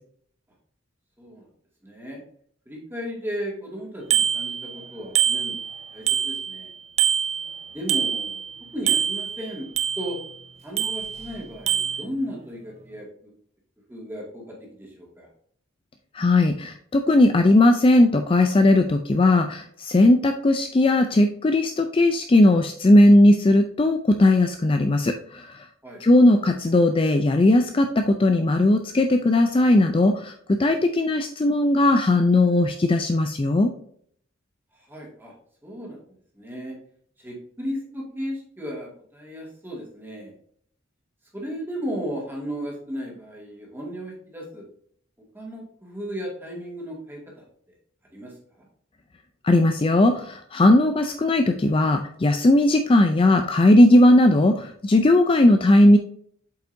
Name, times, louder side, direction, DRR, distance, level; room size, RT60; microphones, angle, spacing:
voice 1, 1.8-2.2 2.7-5.6 5.9-6.7 7.7-8.4 8.7-9.7 10.0-10.2 10.6-13.3 13.9-15.3 25.8-26.0 34.7-35.3 35.6-36.0 36.3-36.8 37.2-40.3 41.3-44.6 45.3-47.4 48.1-48.3 48.6-48.7, equal, 10° right, -2 dB, 2.2 m, -35 dB
Bicycle bell, 4.1-4.8 5.2-6.7 7.0-8.5 8.9-10.3 10.8-11.4 11.7-12.0, right 8 dB, 35° right, 0.4 m, -25 dB
voice 2, 16.1-25.7 26.0-33.7 49.4-56.0, left 1 dB, 25° left, 6 dB, 0.4 m, -18 dB
7.8 x 5.4 x 2.6 m, 0.64 s
head